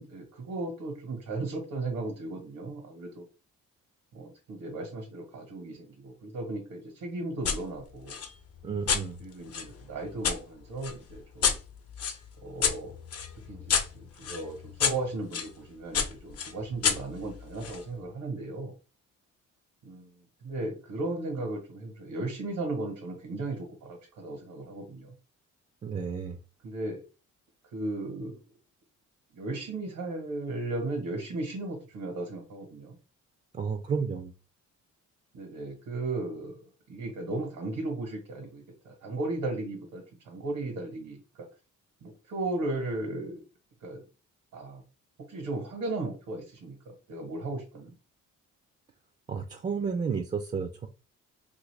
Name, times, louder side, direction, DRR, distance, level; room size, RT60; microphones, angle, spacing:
voice 1, 0.0-3.2 4.1-8.2 9.2-11.6 12.4-12.9 13.5-18.7 19.8-20.1 20.4-25.1 26.6-27.0 27.7-28.4 29.3-33.0 35.3-41.2 42.0-43.4 43.8-44.0 44.5-44.8 45.3-47.9, right 2 dB, 80° right, 1 dB, 1.2 m, -36 dB
sound 1, 7.4-7.6 8.1-10.4 10.8-15.5 15.9-17.8, left 7 dB, 55° left, 0.6 m, -30 dB
voice 2, 8.6-9.2 25.8-26.4 33.5-34.3 49.3-50.9, right 6 dB, 25° right, 5 dB, 0.3 m, -32 dB
2.9 x 2.6 x 3.2 m, 0.33 s
cardioid pair, 90°, 30 cm